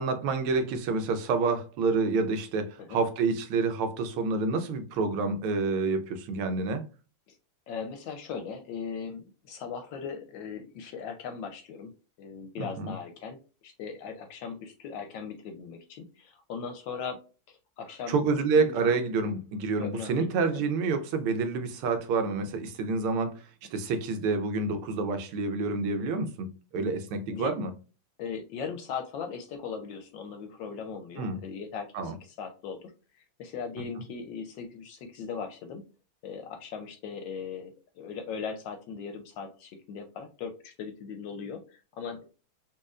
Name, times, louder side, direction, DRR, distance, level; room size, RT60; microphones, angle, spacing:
voice 1, 0.0-6.8 12.6-12.9 18.1-23.4 23.7-26.5 26.7-27.7 31.2-31.4 31.9-32.1, right 4 dB, 85° right, 1.5 m, -28 dB
voice 2, 7.7-11.9 12.2-13.4 13.6-17.2 17.5-18.9 19.8-20.6 27.3-27.5 28.2-32.9 33.4-35.8 36.2-42.2, left 6 dB, 75° left, 1.1 m, -39 dB
4.2 x 2.7 x 2.3 m
omnidirectional pair, 2.3 m